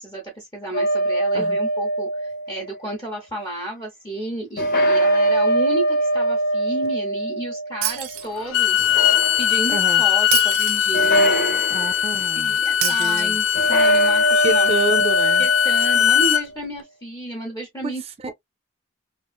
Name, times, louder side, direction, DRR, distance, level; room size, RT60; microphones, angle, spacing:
voice 1, 0.0-8.9 9.4-11.6 12.4-14.8 15.4-18.3, right 2 dB, 20° left, 0.7 m, -32 dB
sound 1, 0.7-2.8 4.6-8.3 8.8-9.8 10.9-12.1 13.5-16.3, right 1 dB, 45° left, 1.0 m, -22 dB
Shatter, 7.8-8.8 10.3-11.3 12.8-13.8, right 13 dB, 90° right, 0.5 m, -28 dB
Bowed string instrument, 8.4-16.4, left 9 dB, 85° left, 0.5 m, -20 dB
voice 2, 9.7-10.0 11.7-13.4 14.4-15.5 17.8-18.0, right 2 dB, 30° right, 0.4 m, -28 dB
3.0 x 2.5 x 2.2 m
head